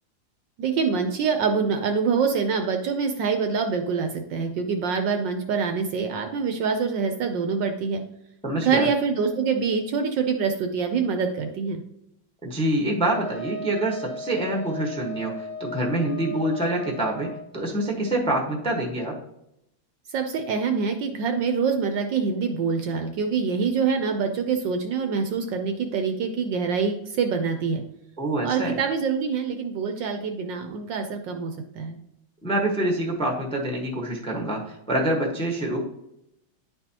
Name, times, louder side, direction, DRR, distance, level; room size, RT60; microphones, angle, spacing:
voice 1, 0.6-8.0 8.6-11.8 20.1-27.8 28.4-32.0, right 5 dB, 70° right, 5 dB, 1.2 m, -25 dB
voice 2, 8.4-8.9 12.4-19.2 28.2-28.7 32.4-35.8, right 1 dB, 5° left, 0 dB, 0.8 m, -26 dB
Wind instrument woodwind instrument, 13.0-17.4, left 1 dB, 65° left, 1.3 m, -37 dB
10.5 x 4.5 x 2.9 m, 0.81 s
omnidirectional pair, 2.3 m